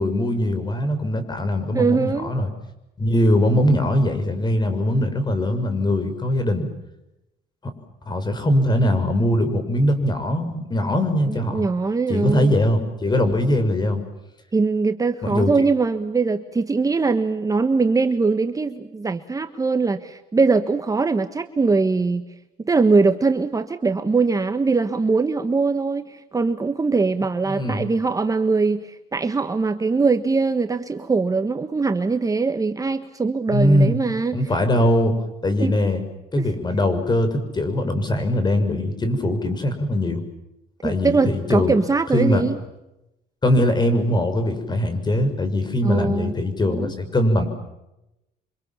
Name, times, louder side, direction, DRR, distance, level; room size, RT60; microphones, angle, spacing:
voice 1, 0.0-2.5 3.0-6.7 7.6-7.8 8.1-11.6 12.1-14.0 15.2-15.5 27.5-27.9 33.5-34.0 34.3-36.0 36.3-40.2 40.8-41.7 42.1-42.5 43.4-47.5, left 1 dB, 25° left, 9 dB, 6.0 m, -21 dB
voice 2, 1.7-2.3 11.3-12.5 14.5-22.2 22.6-34.4 35.6-35.7 36.4-36.5 40.8-42.5 45.8-46.3 46.6-46.9, right 4 dB, 20° right, 8 dB, 1.4 m, -21 dB
29.5 x 25.5 x 7.5 m, 0.92 s
cardioid pair, 110°, 17 cm